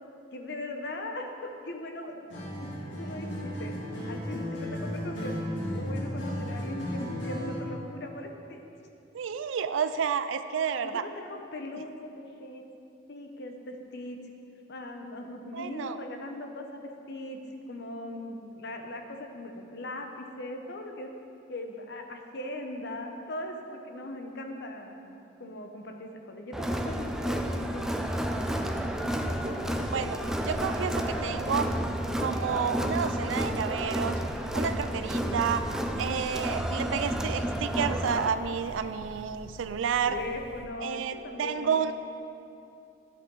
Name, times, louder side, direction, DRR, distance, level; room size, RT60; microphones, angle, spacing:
voice 1, 0.3-2.3 2.6-2.7 3.0-3.3 3.6-3.7 4.1-8.6 10.9-12.6 13.1-14.2 14.7-16.8 17.1-21.1 21.5-28.7 29.1-29.7 34.9-35.6 40.1-41.9, left 1 dB, 65° left, 4 dB, 0.9 m, -40 dB
Acoustic guitar, 2.3-7.7, equal, 80° left, 2.1 m, -34 dB
voice 2, 9.1-11.0 15.5-16.0 29.9-30.2 30.5-31.7 32.2-34.2 34.5-35.6 36.0-40.2 40.8-41.9, right 7 dB, 85° right, 11 dB, 0.4 m, -30 dB
Crowd, 26.5-38.3, equal, 5° right, 0.4 m, -31 dB
sound 1, 26.5-40.6, equal, 30° right, 1.0 m, -45 dB
11.0 x 8.0 x 3.9 m, 2.6 s
head